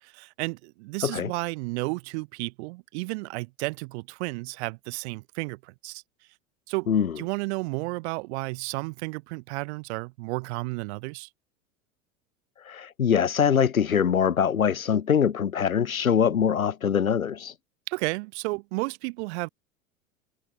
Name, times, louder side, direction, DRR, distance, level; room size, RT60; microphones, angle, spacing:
voice 1, 0.0-6.0 6.7-6.9 7.2-11.3 17.9-19.5, right 25 dB, 50° right, 4.2 m, -32 dB
voice 2, 6.9-7.2 12.6-17.5, left 7 dB, 90° left, 0.6 m, -23 dB
figure-of-eight pair, 85°, 41 cm